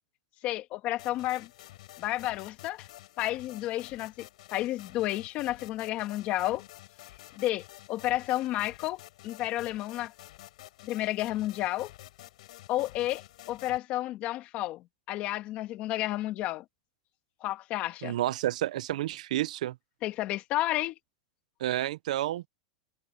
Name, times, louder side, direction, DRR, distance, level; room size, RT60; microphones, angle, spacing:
voice 1, 0.4-1.5 2.0-2.9 3.2-6.6 7.4-10.1 10.8-11.9 12.7-16.6 17.4-18.1 20.0-21.0, left 15 dB, 35° left, 1.6 m, -31 dB
sound 1, 1.0-13.8, left 16 dB, 65° left, 6.7 m, -50 dB
voice 2, 18.0-19.8 21.6-22.4, right 14 dB, 75° right, 0.6 m, -30 dB
supercardioid pair, 160°, 4 cm